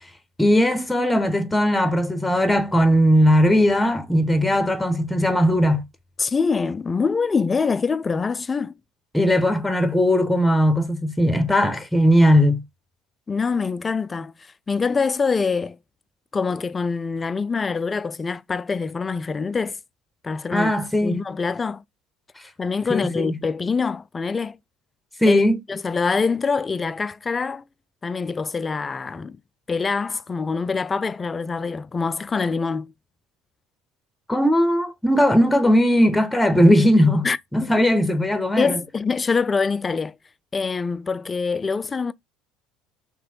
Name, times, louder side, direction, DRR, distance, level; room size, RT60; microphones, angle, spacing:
voice 1, 0.4-5.9 9.1-12.6 20.5-21.2 22.9-23.3 25.2-25.6 34.3-37.3 37.5-38.8, equal, 5° left, 0.8 m, -18 dB
voice 2, 6.2-8.7 13.3-14.3 14.7-15.8 16.3-19.8 20.2-20.7 21.0-21.8 22.6-24.6 25.3-25.4 25.7-27.6 28.0-29.4 29.7-32.9 37.2-37.4 38.6-40.1 40.5-42.1, left 5 dB, 25° left, 0.3 m, -24 dB
3.3 x 3.0 x 4.6 m
figure-of-eight pair, 60°, 0 cm